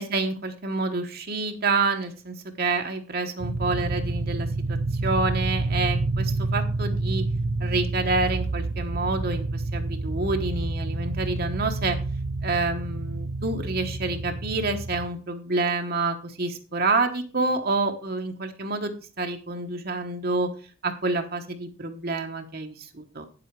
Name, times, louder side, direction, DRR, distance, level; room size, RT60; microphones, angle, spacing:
voice 1, 0.0-7.2 7.6-12.0 12.4-20.5 20.8-23.3, right 3 dB, 45° right, 5 dB, 1.1 m, -28 dB
sound 1, 3.4-15.1, right 2 dB, 85° right, 0.8 m, -28 dB
9.1 x 7.7 x 4.6 m, 0.38 s
head